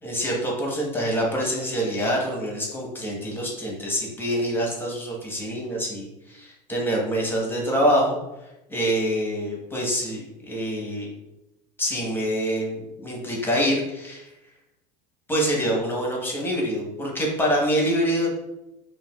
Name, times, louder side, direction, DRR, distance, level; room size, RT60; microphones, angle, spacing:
voice 1, 0.0-8.2 8.7-11.1 11.8-14.3 15.3-18.3, equal, 10° left, -2 dB, 1.2 m, -25 dB
5.6 x 2.5 x 2.4 m, 0.92 s
hypercardioid pair, 95°, 21 cm